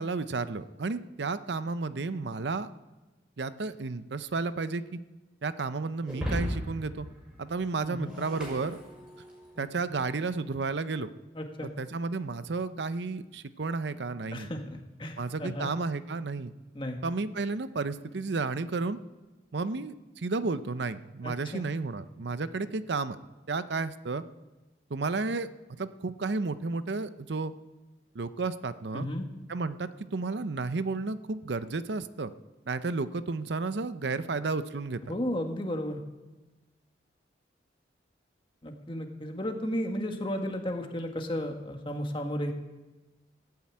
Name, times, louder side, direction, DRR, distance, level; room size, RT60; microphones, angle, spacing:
voice 1, 0.0-2.7 3.4-4.8 5.4-7.1 7.4-8.8 9.6-11.1 11.8-14.5 15.2-16.5 17.0-19.0 19.5-23.2 23.5-24.2 24.9-25.5 25.8-27.5 28.1-29.1 29.5-32.3 32.7-35.0, right 3 dB, 70° right, 13 dB, 0.6 m, -32 dB
Shatter, 6.1-9.5, equal, 5° right, 5.4 m, -37 dB
voice 2, 7.8-8.1 9.5-9.7 11.3-11.7 14.3-15.7 16.7-17.0 21.2-21.6 28.9-29.3 35.1-36.0 38.6-42.5, equal, 25° left, 4 dB, 1.5 m, -34 dB
15.5 x 9.5 x 8.7 m, 1.2 s
head